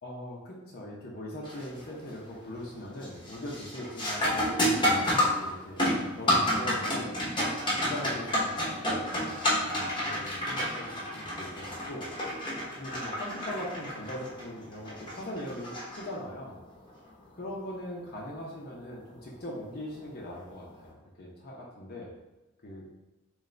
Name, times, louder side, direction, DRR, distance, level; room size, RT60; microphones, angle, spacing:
voice 1, 0.0-5.8 6.2-7.2 7.8-12.1 12.8-16.6 17.4-22.1 22.6-22.9, left 1 dB, 50° left, -4 dB, 0.7 m, -40 dB
sound 1, 1.4-1.8 2.2-2.7 3.0-16.5 19.0-19.1 20.0-20.2, equal, 25° left, 0.9 m, -30 dB
3.9 x 3.2 x 3.2 m, 1.0 s
head